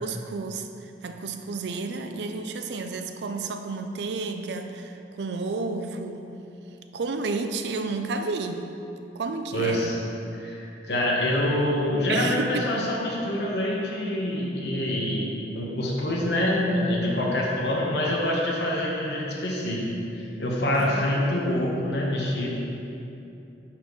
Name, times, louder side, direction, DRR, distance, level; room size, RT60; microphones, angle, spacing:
voice 1, 0.0-6.3 6.9-8.7 9.1-9.9 12.1-12.9 20.7-21.0, right 3 dB, 75° right, 7 dB, 0.4 m, -31 dB
voice 2, 9.5-9.9 10.4-15.3 15.5-19.8 20.2-22.5, left 1 dB, 75° left, -3 dB, 1.1 m, -26 dB
10.0 x 4.3 x 3.1 m, 2.8 s
head